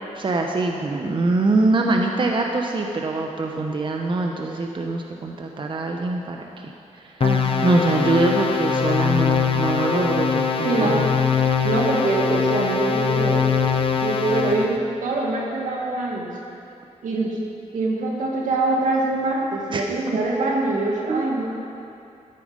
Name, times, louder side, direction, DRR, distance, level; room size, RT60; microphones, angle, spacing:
voice 1, 0.2-6.7 7.0-7.1 7.6-11.1 19.7-20.2 21.1-21.2, right 2 dB, 40° right, 2 dB, 0.9 m, -23 dB
sound 1, 7.2-14.8, left 6 dB, 45° left, 0.9 m, -22 dB
voice 2, 7.2-7.8 10.6-11.0 11.4-13.5 13.9-16.3 17.0-17.4 17.7-21.5, right 3 dB, 85° right, -2 dB, 2.2 m, -24 dB
14.0 x 9.1 x 5.2 m, 2.6 s
cardioid pair, 100°, 13 cm